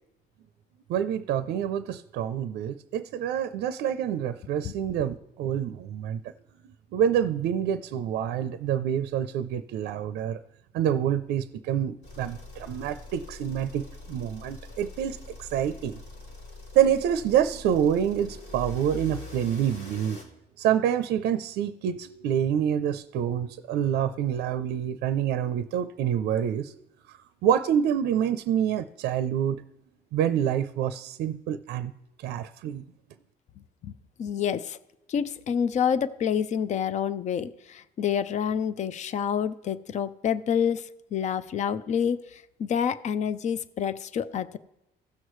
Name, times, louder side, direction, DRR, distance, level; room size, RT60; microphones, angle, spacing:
voice 1, 0.9-6.2 6.9-10.4 10.7-16.0 16.7-20.2 20.6-26.7 27.1-29.6 30.1-31.9 32.2-32.8, right 9 dB, 75° right, 11 dB, 0.5 m, -27 dB
sound 1, 12.0-20.2, left 2 dB, 85° left, 2.9 m, -43 dB
voice 2, 33.8-34.8 35.1-40.9 41.1-44.6, left 8 dB, 45° left, 15 dB, 0.5 m, -28 dB
16.0 x 6.4 x 3.1 m, 0.91 s
cardioid pair, 110°, 17 cm